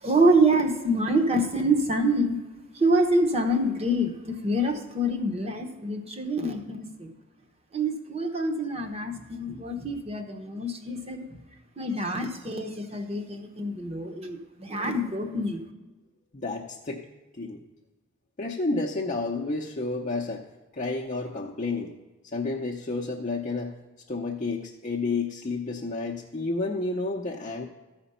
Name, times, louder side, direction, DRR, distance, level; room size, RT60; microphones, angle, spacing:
voice 1, 0.0-2.4 2.8-7.1 7.7-11.3 11.8-15.6, right 1 dB, 30° right, 6 dB, 0.9 m, -26 dB
voice 2, 16.3-17.0 17.3-17.6 18.4-20.4 20.7-21.9 22.3-23.8 24.1-27.6, left 3 dB, 40° left, -2 dB, 0.6 m, -30 dB
13.5 x 5.1 x 5.5 m, 1.2 s
head